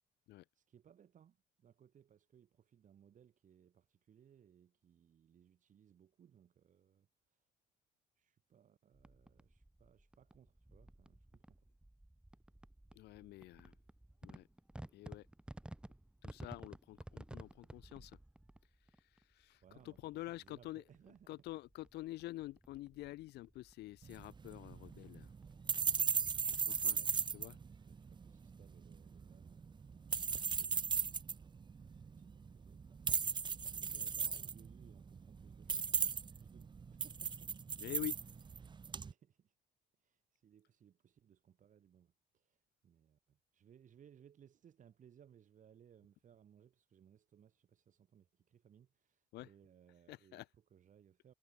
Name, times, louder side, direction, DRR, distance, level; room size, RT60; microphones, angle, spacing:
voice 1, 0.5-7.5 8.1-11.7 17.5-17.8 19.5-21.5 26.8-31.1 31.9-36.1 36.4-37.5 38.6-39.5 40.0-51.3, right 9 dB, 50° right, 6.2 m, -65 dB
sound 1, 8.9-27.1, right 1 dB, 5° right, 1.3 m, -56 dB
voice 2, 12.9-13.7 14.2-14.5 14.9-15.3 16.2-18.2 18.8-20.8 21.3-25.3 26.7-27.0 27.3-27.6 37.8-38.2 49.3-49.5 50.1-50.5, left 17 dB, 80° left, 1.7 m, -48 dB
sound 2, 24.0-39.1, right 5 dB, 25° right, 1.1 m, -38 dB
cardioid pair, 110°, 17 cm